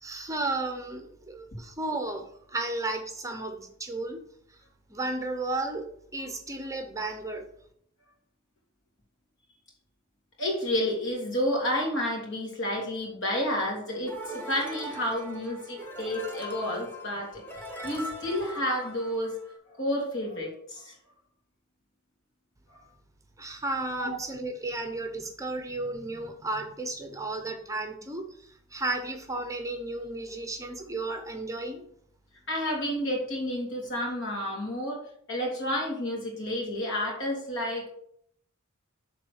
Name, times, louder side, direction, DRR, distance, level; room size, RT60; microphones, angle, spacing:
voice 1, 0.0-4.2 4.9-5.9 6.1-7.5 23.4-31.8, right 2 dB, 15° right, 5 dB, 0.7 m, -33 dB
voice 2, 10.4-17.4 17.8-19.3 19.8-20.9 24.0-24.2 32.5-35.0 35.3-37.9, left 1 dB, 60° left, -2 dB, 3.1 m, -30 dB
sound 1, 14.1-19.6, equal, 10° left, 1.3 m, -41 dB
7.3 x 4.1 x 6.4 m, 0.67 s
head